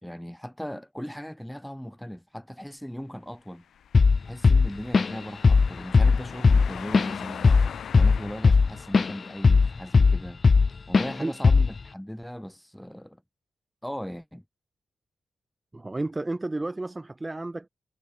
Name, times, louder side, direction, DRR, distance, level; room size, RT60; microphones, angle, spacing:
voice 1, 0.0-3.6 4.3-7.5 8.0-10.4 10.9-13.2 13.8-14.4, equal, 5° left, 4.3 m, -38 dB
sound 1, 3.6-10.4, left 8 dB, 80° left, 6.8 m, -42 dB
Drum kit / Drum, 3.9-4.2 4.4-5.2 5.4-5.7 5.9-9.1 9.4-10.7 10.9-11.1 11.4-11.8, left 4 dB, 40° left, 0.6 m, -18 dB
voice 2, 15.7-17.7, right 2 dB, 20° right, 5.2 m, -32 dB
cardioid pair, 100°, 0 cm